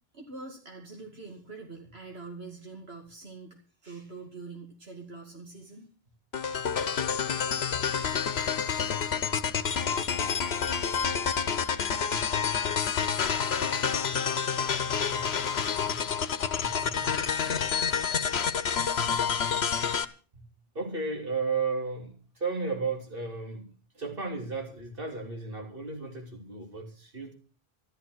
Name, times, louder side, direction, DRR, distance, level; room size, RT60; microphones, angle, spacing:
voice 1, 0.1-5.9, right 3 dB, 80° right, 1 dB, 2.7 m, -44 dB
sound 1, 6.3-20.0, left 7 dB, 85° left, 1.2 m, -28 dB
voice 2, 14.1-14.4 14.8-15.3 15.9-16.0 16.6-17.2 19.1-19.9 20.3-20.5 20.7-27.3, right 4 dB, 60° right, 3 dB, 3.2 m, -35 dB
14.0 x 12.5 x 6.3 m, 0.37 s
omnidirectional pair, 1.0 m